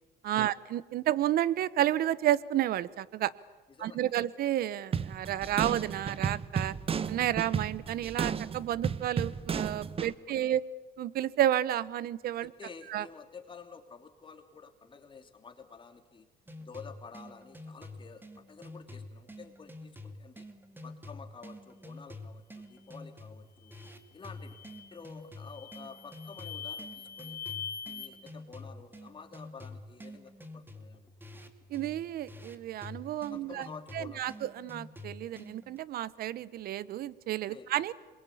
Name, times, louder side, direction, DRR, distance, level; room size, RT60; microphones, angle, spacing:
voice 1, 0.2-3.3 3.8-6.7 7.1-10.6 11.0-12.5 12.9-13.1 31.7-33.7 33.9-37.9, right 12 dB, 65° right, 20 dB, 0.9 m, -31 dB
sound 1, 4.9-10.1, right 6 dB, 35° right, 1.0 m, -33 dB
voice 2, 10.0-10.5 12.4-16.3 16.6-20.5 20.8-23.8 24.1-24.6 24.9-27.4 27.8-31.1 33.3-34.5 37.5-37.7, left 5 dB, 30° left, 5 dB, 3.2 m, -50 dB
sound 2, 16.5-35.8, left 1 dB, 10° right, 2.3 m, -48 dB
sound 3, 23.6-23.9 24.4-24.9 25.4-28.1, left 7 dB, 60° left, 5.3 m, -43 dB
27.0 x 22.0 x 8.6 m, 1.2 s
cardioid pair, 110°, 17 cm